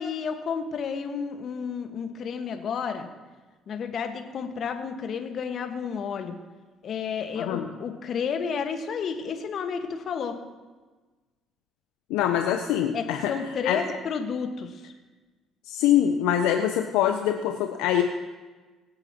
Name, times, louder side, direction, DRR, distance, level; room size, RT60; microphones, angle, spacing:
voice 1, 0.0-3.1 3.7-6.3 6.8-10.4 12.9-14.9, left 6 dB, 55° left, 5 dB, 1.6 m, -31 dB
voice 2, 7.4-7.7 12.1-13.3 13.6-13.8 15.6-18.0, left 10 dB, 75° left, 5 dB, 0.8 m, -24 dB
24.0 x 8.8 x 3.0 m, 1.3 s
hypercardioid pair, 55°, 0 cm